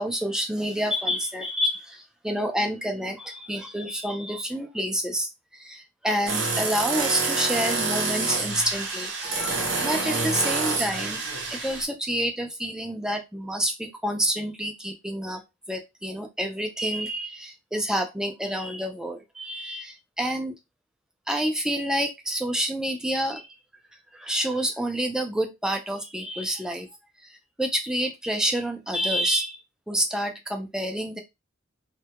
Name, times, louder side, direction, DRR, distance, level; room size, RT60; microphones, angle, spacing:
voice 1, 0.0-11.2 11.5-15.4 15.7-20.5 21.3-23.5 24.1-26.9 27.2-29.6 29.9-31.2, equal, 5° right, 5 dB, 0.3 m, -28 dB
sound 1, 6.3-11.8, right 3 dB, 65° right, 0.5 m, -27 dB
2.2 x 2.1 x 2.8 m, 0.23 s
head